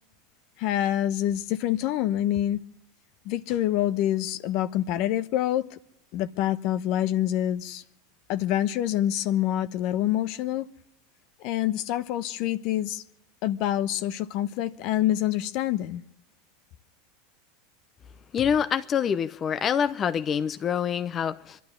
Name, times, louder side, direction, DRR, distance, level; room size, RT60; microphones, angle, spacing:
voice 1, 0.6-2.6 3.2-5.8 6.1-7.8 8.3-10.7 11.4-13.0 13.4-16.0, left 12 dB, 55° left, 1.0 m, -26 dB
voice 2, 18.3-21.6, left 8 dB, 35° left, 0.7 m, -26 dB
24.5 x 12.0 x 10.0 m
hypercardioid pair, 95°, 0 cm